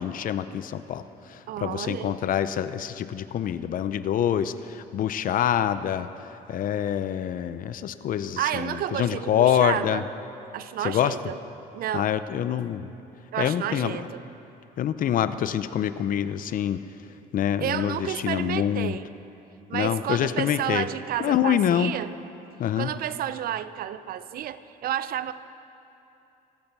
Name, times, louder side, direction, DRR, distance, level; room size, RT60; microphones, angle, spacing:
voice 1, 0.0-6.1 6.5-10.0 10.8-11.2 11.9-12.9 13.4-14.1 14.8-16.8 17.3-19.0 19.7-20.9 21.2-21.9 22.6-22.9, left 10 dB, 55° left, 13 dB, 0.7 m, -26 dB
voice 2, 1.5-2.1 8.4-10.0 10.5-11.4 11.7-12.1 13.3-14.2 17.6-19.1 19.7-22.1 22.8-25.3, right 11 dB, 60° right, 14 dB, 0.6 m, -31 dB
24.5 x 8.6 x 6.1 m, 2.8 s
cardioid pair, 110°, 17 cm